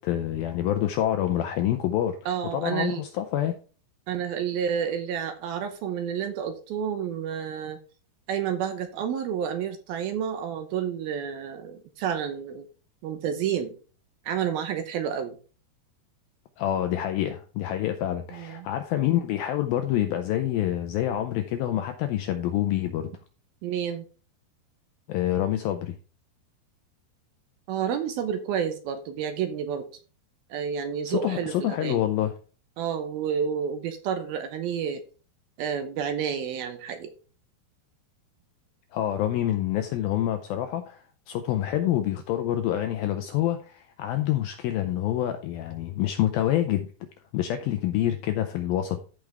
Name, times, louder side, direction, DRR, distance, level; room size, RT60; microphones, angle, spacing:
voice 1, 0.0-3.6 16.6-23.1 25.1-25.9 31.1-32.3 38.9-46.9 47.3-49.0, left 12 dB, 85° left, 2.1 m, -27 dB
voice 2, 2.3-3.0 4.1-7.8 8.3-12.6 13.0-13.7 14.3-15.4 18.3-18.7 23.6-24.1 27.7-29.9 30.5-32.0 32.8-35.0 35.6-37.1, right 8 dB, 75° right, 2.4 m, -30 dB
14.0 x 5.1 x 3.4 m
omnidirectional pair, 4.9 m